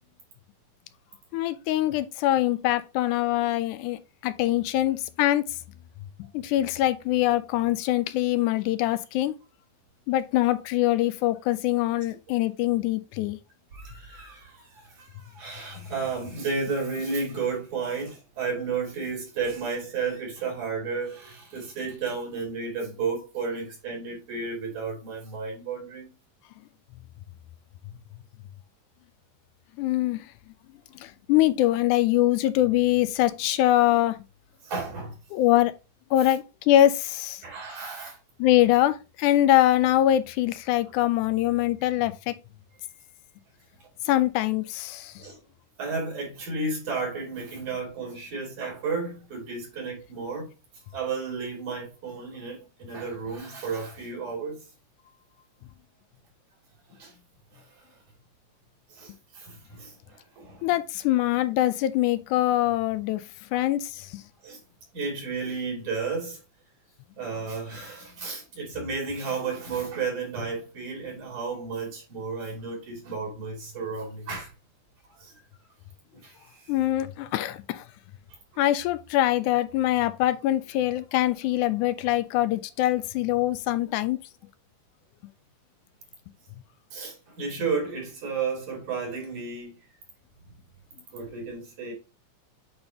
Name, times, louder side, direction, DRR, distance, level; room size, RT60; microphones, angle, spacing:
voice 1, 1.3-5.4 6.3-9.3 10.1-13.4 29.8-30.3 31.0-34.2 35.3-35.7 36.1-37.4 38.4-42.4 44.1-45.1 60.6-63.2 63.5-64.2 76.7-77.9 78.6-84.2, left 14 dB, 85° left, 2.0 m, -23 dB
voice 2, 13.7-26.1 34.6-35.2 36.2-36.3 37.4-38.2 45.2-45.4 45.8-50.5 50.9-54.6 57.0-57.2 57.5-57.8 58.9-60.7 63.5-63.6 64.4-64.6 64.9-66.4 67.2-74.5 75.2-75.3 76.1-76.7 86.9-89.7 91.1-91.9, right 4 dB, 70° right, 4.3 m, -33 dB
8.8 x 4.0 x 2.8 m
omnidirectional pair, 3.6 m